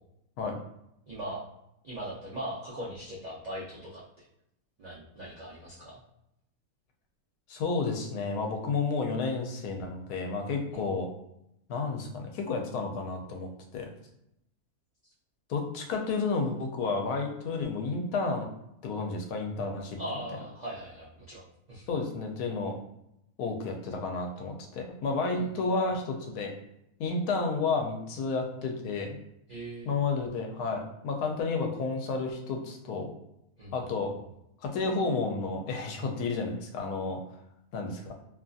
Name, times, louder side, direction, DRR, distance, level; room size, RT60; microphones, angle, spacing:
voice 1, 1.1-1.4 1.8-4.3 4.8-6.0 10.7-10.9 20.0-21.9 25.4-25.6 29.5-30.0 33.6-33.7, right 1 dB, 90° right, -8 dB, 0.3 m, -40 dB
voice 2, 7.5-11.1 11.7-13.9 15.5-18.5 18.8-20.0 21.9-22.8 23.4-26.5 27.0-29.2 29.9-33.1 33.7-34.1 34.6-37.2 37.7-38.1, left 4 dB, 85° left, 2 dB, 1.1 m, -31 dB
2.8 x 2.3 x 2.5 m, 0.81 s
omnidirectional pair, 1.6 m